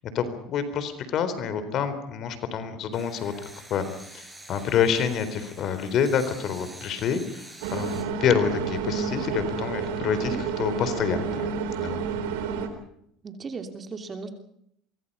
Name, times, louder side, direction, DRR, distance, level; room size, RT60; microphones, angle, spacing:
voice 1, 0.1-3.3 3.7-3.9 4.1-7.4 7.7-11.5 11.8-12.0, left 7 dB, 50° left, 11 dB, 3.9 m, -27 dB
sound 1, 2.9-8.0, right 1 dB, 5° right, 7.4 m, -47 dB
sound 2, 7.6-12.7, right 6 dB, 85° right, 4.2 m, -30 dB
voice 2, 13.2-14.3, right 4 dB, 30° right, 6 dB, 3.1 m, -36 dB
25.5 x 23.5 x 5.6 m, 0.72 s
supercardioid pair, 105°, 0 cm